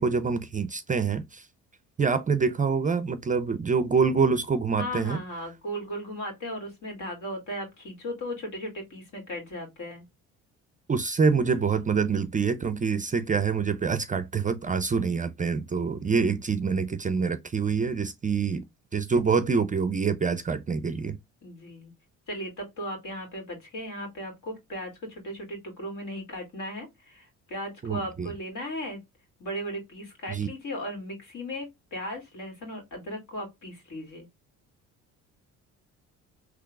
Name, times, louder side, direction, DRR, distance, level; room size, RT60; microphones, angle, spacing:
voice 1, 0.0-1.5 2.0-5.2 10.9-18.6 18.9-21.2 27.8-28.3 30.3-30.5, right 5 dB, 25° right, 0.4 m, -26 dB
voice 2, 4.8-10.0 21.4-21.9 22.3-29.0 29.4-34.3, equal, 65° left, 2.4 m, -36 dB
3.6 x 3.1 x 2.3 m
supercardioid pair, 80°, 33 cm